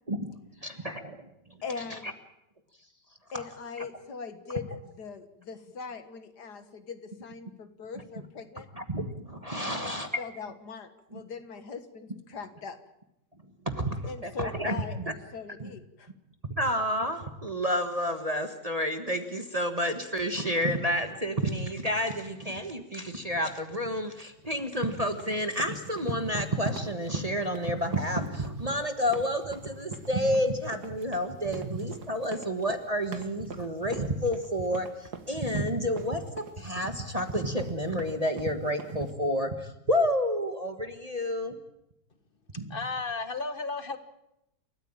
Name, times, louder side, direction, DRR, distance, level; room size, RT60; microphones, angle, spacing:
voice 1, 0.6-1.3 3.4-3.5 8.8-10.2 11.1-11.2 13.6-15.1 15.6-15.7 16.6-41.6 42.6-42.7, equal, 25° right, 6 dB, 1.4 m, -30 dB
voice 2, 1.6-2.1 3.3-8.7 9.6-12.8 14.1-16.1, left 5 dB, 70° left, 9 dB, 2.1 m, -41 dB
sound 1, 24.5-39.1, right 6 dB, 65° right, 2.2 m, -46 dB
voice 3, 42.7-44.0, left 3 dB, 30° left, 10 dB, 1.6 m, -33 dB
29.5 x 14.0 x 8.8 m, 0.85 s
omnidirectional pair, 1.9 m